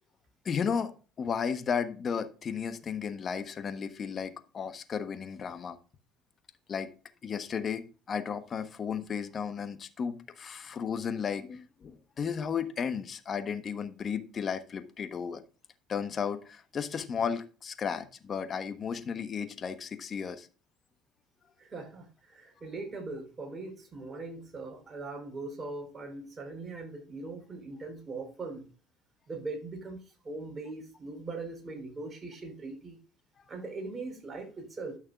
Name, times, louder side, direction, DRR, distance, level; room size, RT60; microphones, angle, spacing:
voice 1, 0.4-0.9 1.2-5.8 6.7-6.9 7.2-15.4 15.9-20.5, left 6 dB, 40° left, 10 dB, 1.2 m, -34 dB
voice 2, 21.6-28.6 29.3-33.0 33.5-35.0, right 3 dB, 30° right, 3 dB, 4.6 m, -40 dB
12.5 x 6.4 x 2.4 m, 0.36 s
hypercardioid pair, 70°, 0 cm